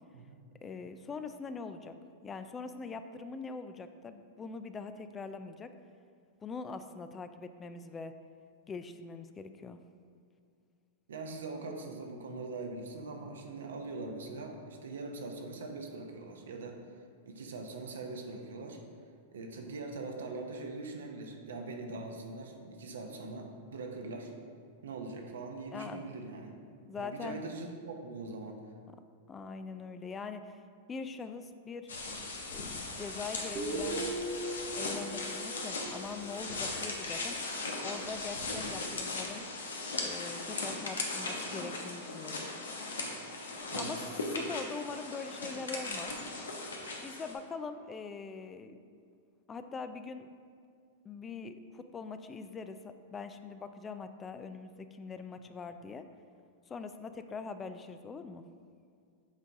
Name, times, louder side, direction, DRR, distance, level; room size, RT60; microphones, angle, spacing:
voice 1, 0.6-1.9 2.2-5.7 6.4-8.1 8.7-9.8 25.7-26.0 26.9-27.4 29.3-30.6 30.9-31.9 32.5-34.1 34.8-37.4 37.8-39.5 40.0-42.4 43.7-44.0 44.3-46.1 47.0-48.8 49.5-50.3 51.0-56.0 56.7-58.4, left 4 dB, 20° left, 9 dB, 0.3 m, -42 dB
voice 2, 11.1-16.8 17.2-18.8 19.3-24.3 24.8-26.6 27.0-28.6 43.0-43.1 43.7-44.0, right 3 dB, 80° right, 3 dB, 0.8 m, -42 dB
sound 1, 31.9-47.3, left 3 dB, 85° left, 0.9 m, -38 dB
Guitar, 33.5-37.1, right 2 dB, 35° right, 0.7 m, -39 dB
7.3 x 3.9 x 3.6 m, 2.3 s
hypercardioid pair, 105°, 0 cm